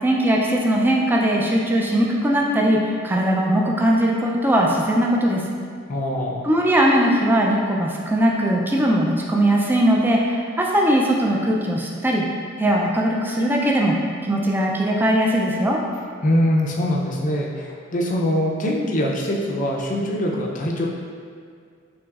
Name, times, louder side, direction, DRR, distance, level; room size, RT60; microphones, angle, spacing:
voice 1, 0.0-5.5 6.4-12.3 12.6-15.8, right 1 dB, 10° right, -2 dB, 0.4 m, -20 dB
voice 2, 5.9-6.5 16.2-20.9, left 1 dB, 40° left, -1 dB, 0.5 m, -23 dB
5.8 x 3.0 x 2.4 m, 2.2 s
head